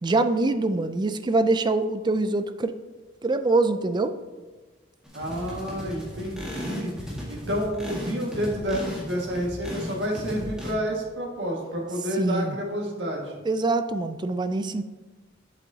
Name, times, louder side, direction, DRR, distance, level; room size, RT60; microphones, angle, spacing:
voice 1, 0.0-2.7 3.2-4.1 12.2-12.6 13.4-14.8, right 2 dB, 25° right, 10 dB, 0.4 m, -24 dB
sound 1, 5.0-10.7, equal, 5° right, 1.7 m, -35 dB
voice 2, 5.1-6.9 7.3-13.4, equal, 75° right, -1 dB, 1.7 m, -29 dB
7.9 x 7.4 x 2.8 m, 1.3 s
head